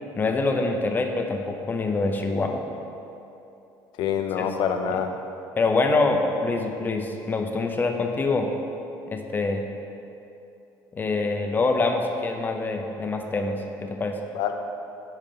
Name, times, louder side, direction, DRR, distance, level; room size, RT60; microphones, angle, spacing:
voice 1, 0.1-2.6 4.4-4.5 5.6-8.5 9.1-9.6 10.9-14.2, left 3 dB, 25° left, 4 dB, 0.7 m, -25 dB
voice 2, 4.0-5.1 14.3-14.5, left 8 dB, 70° left, 5 dB, 0.7 m, -25 dB
10.0 x 5.5 x 3.8 m, 2.8 s
cardioid pair, 130°, 8 cm